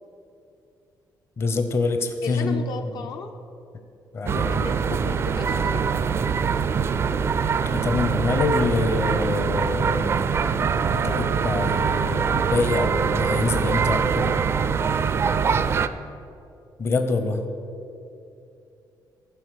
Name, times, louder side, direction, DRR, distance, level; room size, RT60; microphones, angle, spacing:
voice 1, 1.4-2.9 4.1-4.7 7.7-14.3 16.8-17.4, left 3 dB, 35° left, 7 dB, 0.7 m, -26 dB
voice 2, 2.2-3.3 4.5-6.0 15.2-15.7, left 5 dB, 65° left, 4 dB, 0.7 m, -35 dB
sound 1, 4.3-15.9, right 6 dB, 35° right, 0.4 m, -23 dB
15.0 x 5.1 x 6.4 m, 2.6 s
cardioid pair, 160°, 7 cm